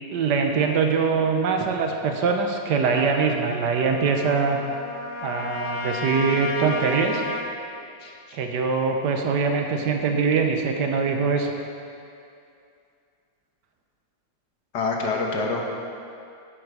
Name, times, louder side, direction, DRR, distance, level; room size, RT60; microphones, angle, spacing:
voice 1, 0.1-4.6 5.2-7.2 8.3-11.5, right 5 dB, 70° right, 3 dB, 1.5 m, -23 dB
Trumpet, 3.0-7.5, left 2 dB, 50° left, 1.0 m, -33 dB
voice 2, 8.0-8.4 14.7-15.6, left 3 dB, 65° left, 0 dB, 1.7 m, -27 dB
11.0 x 7.7 x 4.9 m, 2.5 s
omnidirectional pair, 1.9 m